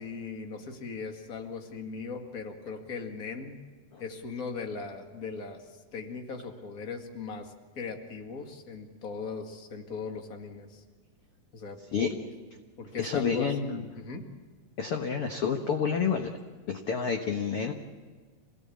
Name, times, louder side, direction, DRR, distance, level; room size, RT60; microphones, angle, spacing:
voice 1, 0.0-3.6 4.0-10.8 11.5-12.1 12.8-13.5 13.9-14.3, left 4 dB, 30° left, 4 dB, 1.8 m, -38 dB
voice 2, 13.0-13.8 14.8-16.3 16.7-17.7, left 6 dB, 55° left, 4 dB, 1.7 m, -29 dB
27.0 x 18.0 x 8.5 m, 1.5 s
omnidirectional pair, 4.2 m